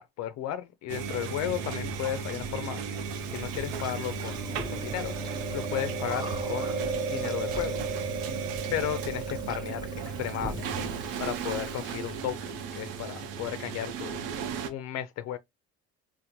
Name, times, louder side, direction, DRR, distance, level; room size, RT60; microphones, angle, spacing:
voice 1, 0.0-3.0 3.3-6.7 7.1-7.8 8.7-10.9 11.2-14.2 14.6-15.4, left 11 dB, 55° left, 0.4 m, -34 dB
sound 1, 0.9-14.7, right 5 dB, 80° right, 0.6 m, -35 dB
Chewing mastication, 3.1-12.1, right 4 dB, 15° right, 0.7 m, -36 dB
4.3 x 2.0 x 2.6 m
supercardioid pair, 80°, 32 cm